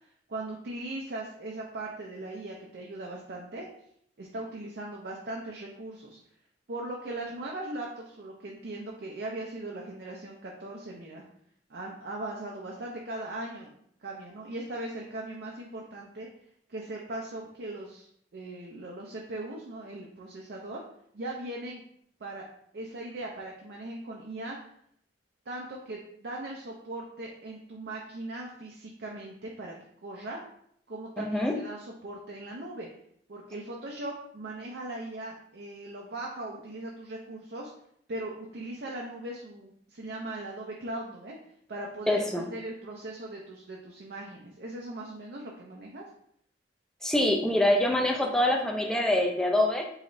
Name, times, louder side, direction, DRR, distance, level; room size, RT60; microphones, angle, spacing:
voice 1, 0.0-3.7 4.2-6.2 6.7-11.2 11.7-13.7 14.0-16.3 16.7-18.1 18.3-20.8 21.1-21.8 22.2-22.5 22.7-24.6 25.5-29.7 30.0-30.4 30.9-32.9 33.3-37.7 38.1-41.4 41.7-46.1, right 2 dB, 60° right, -2 dB, 0.6 m, -39 dB
voice 2, 31.2-31.6 42.1-42.4 47.0-49.8, left 1 dB, 5° left, 1 dB, 0.5 m, -25 dB
4.8 x 3.1 x 2.6 m, 0.69 s
head